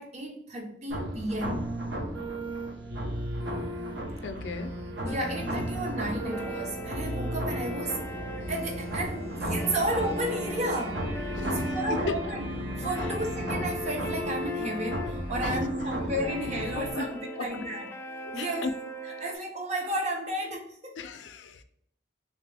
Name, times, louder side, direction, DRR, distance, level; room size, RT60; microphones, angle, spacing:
voice 1, 0.0-1.7 5.0-8.2 8.5-11.1 11.5-12.5 12.8-17.9 18.3-18.7 19.0-21.0, right 1 dB, 40° right, 0.7 m, -33 dB
sound 1, 0.9-16.9, equal, 70° right, 0.8 m, -34 dB
voice 2, 4.2-4.7 11.3-12.1 13.0-13.1 15.4-15.6 16.2-16.3 16.7-17.1 17.4-17.5 18.3-18.7 19.2-19.3 21.0-21.6, left 4 dB, 75° left, 0.4 m, -36 dB
sound 2, 5.1-19.3, equal, 15° left, 0.4 m, -40 dB
3.3 x 2.9 x 3.3 m
head